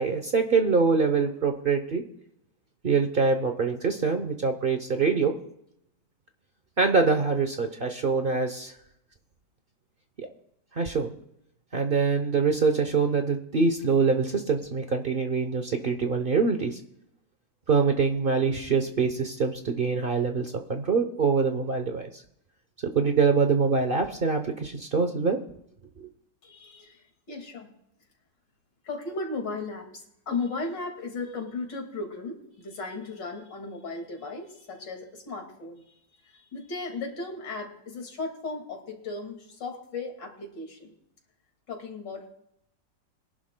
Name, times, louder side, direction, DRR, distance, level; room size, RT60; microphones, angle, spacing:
voice 1, 0.0-2.0 2.8-5.4 6.8-8.7 10.2-10.3 10.7-11.1 11.7-16.8 17.7-22.2 22.9-25.4 26.0-26.1, right 5 dB, 45° right, 6 dB, 0.7 m, -24 dB
voice 2, 26.4-27.0 27.3-27.7 28.8-35.9 36.2-40.9 41.7-42.3, left 3 dB, 75° left, 3 dB, 2.8 m, -36 dB
22.0 x 11.0 x 2.2 m, 0.76 s
omnidirectional pair, 1.9 m